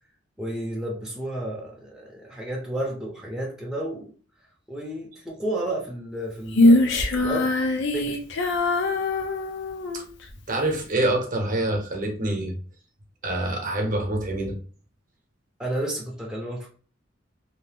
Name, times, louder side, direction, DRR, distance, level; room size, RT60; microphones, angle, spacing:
voice 1, 0.4-4.1 4.7-7.5 7.9-8.2 15.6-16.7, right 1 dB, 5° right, -3 dB, 0.6 m, -32 dB
Female singing, 6.5-10.1, left 2 dB, 65° left, 0.5 m, -22 dB
voice 2, 10.5-12.5 13.2-14.6, right 1 dB, 45° right, 1 dB, 0.8 m, -26 dB
2.7 x 2.0 x 3.3 m, 0.41 s
head